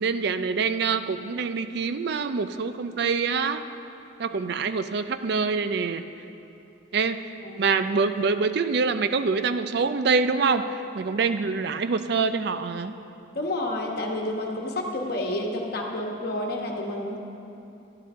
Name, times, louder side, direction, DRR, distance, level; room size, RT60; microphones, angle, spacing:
voice 1, 0.0-3.6 4.2-6.0 6.9-7.2 7.6-10.6 10.9-12.9, right 5 dB, 60° right, 10 dB, 0.4 m, -25 dB
voice 2, 13.3-17.2, left 1 dB, 55° left, 0 dB, 1.2 m, -30 dB
11.5 x 10.5 x 3.7 m, 2.8 s
head